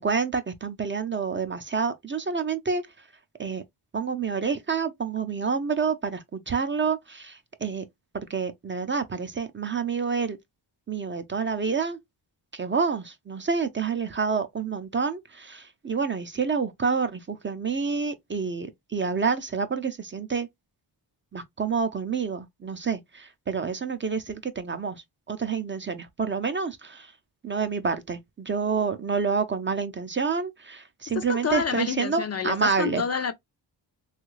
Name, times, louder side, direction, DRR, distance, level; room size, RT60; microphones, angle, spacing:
voice 1, 0.0-2.8 3.4-3.6 3.9-7.8 8.1-10.4 10.9-12.0 12.5-20.5 21.3-25.0 25.3-27.1 27.4-33.0, right 5 dB, 30° right, 0.4 m, -28 dB
voice 2, 31.1-33.3, left 6 dB, 40° left, 0.4 m, -28 dB
3.2 x 2.4 x 3.0 m
wide cardioid pair, 115°, 43 cm